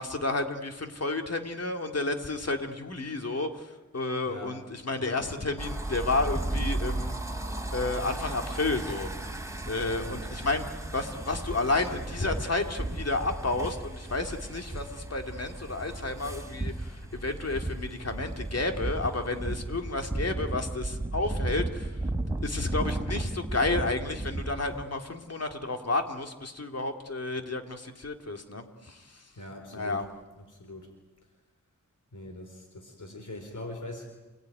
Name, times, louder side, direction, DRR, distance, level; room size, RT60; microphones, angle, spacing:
voice 1, 0.0-7.2 7.7-9.1 9.7-22.0 22.4-29.2 29.7-30.0, left 2 dB, 50° left, 4 dB, 2.7 m, -31 dB
voice 2, 4.3-4.6 4.9-5.6 9.9-10.2 29.4-30.1 30.4-30.9 32.1-34.1, left 1 dB, 75° left, 4 dB, 4.3 m, -42 dB
sound 1, 5.6-24.8, right 2 dB, 10° right, 3.2 m, -34 dB
29.0 x 19.0 x 9.3 m, 1.1 s
wide cardioid pair, 60°, 31 cm